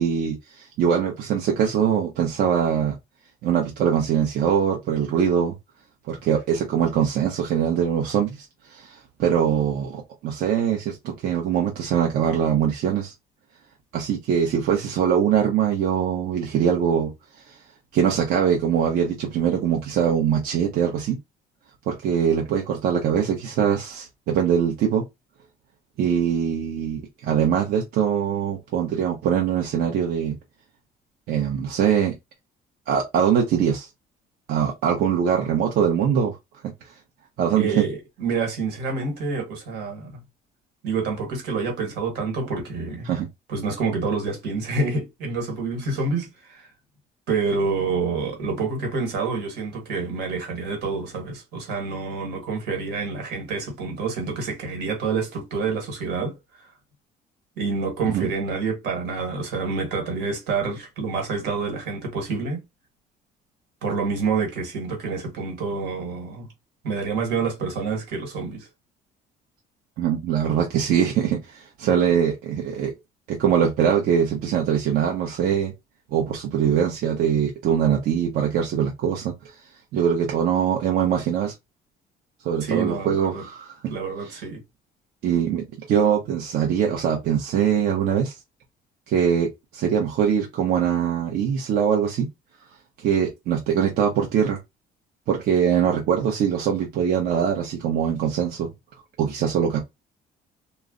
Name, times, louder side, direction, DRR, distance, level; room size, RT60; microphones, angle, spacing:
voice 1, 0.0-2.9 3.4-5.5 6.1-13.1 13.9-17.1 17.4-17.6 17.9-21.2 21.9-25.0 26.0-30.4 31.3-32.1 32.9-33.9 34.5-36.4 37.4-37.8 43.0-43.3 58.1-58.3 70.0-72.9 73.3-75.7 76.1-79.3 79.9-81.5 82.4-83.7 85.2-88.4 89.1-92.3 93.0-94.6 95.3-98.7 99.2-99.8, right 8 dB, 65° right, 0.7 m, -22 dB
voice 2, 37.6-40.2 40.8-43.1 43.5-46.7 47.3-56.4 57.6-62.6 63.8-66.5 66.8-68.7 82.6-83.4 83.9-84.6, right 4 dB, 90° right, 1.4 m, -27 dB
2.3 x 2.0 x 3.6 m
cardioid pair, 110°, 17 cm